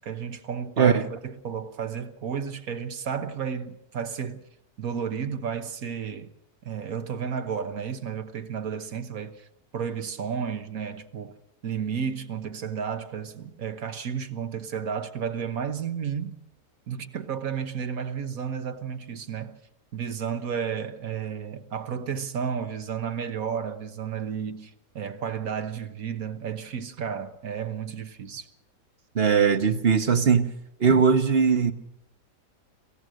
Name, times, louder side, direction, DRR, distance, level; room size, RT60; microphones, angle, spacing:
voice 1, 0.0-4.4 4.8-6.3 6.6-11.4 11.6-16.4 16.9-19.6 19.9-28.5, right 7 dB, 55° right, 1.5 m, -32 dB
voice 2, 0.8-1.1 29.1-30.5 30.8-31.7, right 6 dB, 40° right, 1.3 m, -20 dB
27.0 x 16.0 x 6.4 m
omnidirectional pair, 1.8 m